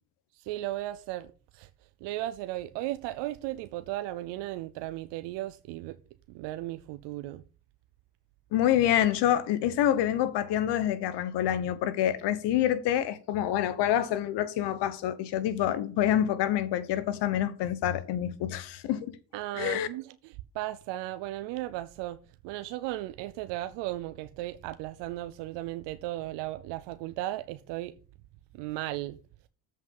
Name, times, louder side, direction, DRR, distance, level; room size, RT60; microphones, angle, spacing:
voice 1, 0.4-1.3 1.5-1.7 2.0-6.0 6.3-7.4 19.3-22.2 22.4-27.9 28.5-29.2, right 15 dB, 85° right, 0.6 m, -36 dB
voice 2, 8.5-19.2 19.5-19.9, left 11 dB, 75° left, 1.1 m, -27 dB
7.6 x 5.4 x 5.4 m
supercardioid pair, 80°, 41 cm